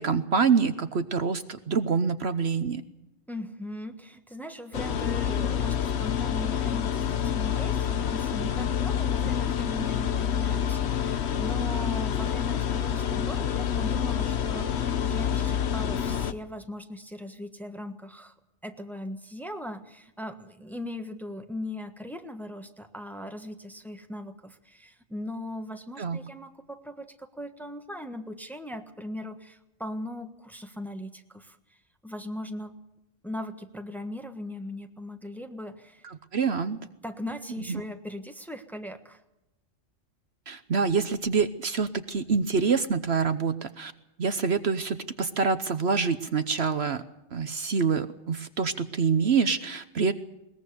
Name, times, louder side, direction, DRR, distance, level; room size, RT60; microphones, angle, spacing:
voice 1, 0.0-2.8 26.0-26.2 36.3-36.8 37.7-37.8 40.5-43.9 44.2-47.0 47.3-50.1, right 5 dB, 60° right, 10 dB, 1.1 m, -26 dB
voice 2, 3.3-18.3 18.6-31.8 32.0-32.8 33.2-36.1 37.0-39.2, left 1 dB, ahead, 6 dB, 1.4 m, -39 dB
sound 1, 4.7-16.3, left 8 dB, 60° left, 1.2 m, -27 dB
21.5 x 20.0 x 6.9 m, 0.91 s
omnidirectional pair, 1.3 m